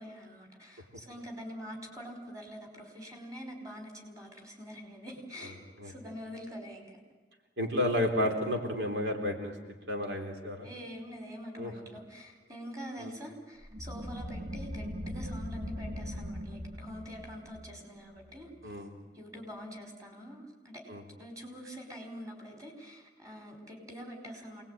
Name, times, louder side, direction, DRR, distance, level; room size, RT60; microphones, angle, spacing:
voice 1, 0.0-7.0 10.6-18.7 19.1-20.9 21.2-24.7, equal, 20° right, 3 dB, 5.0 m, -45 dB
voice 2, 7.6-9.6 9.9-10.7 11.6-11.7 13.0-13.1 18.6-18.9 20.9-21.0, left 1 dB, 80° right, 2 dB, 3.6 m, -31 dB
sound 1, 13.6-19.0, equal, 65° right, 2.9 m, -40 dB
27.5 x 20.0 x 9.2 m, 1.3 s
head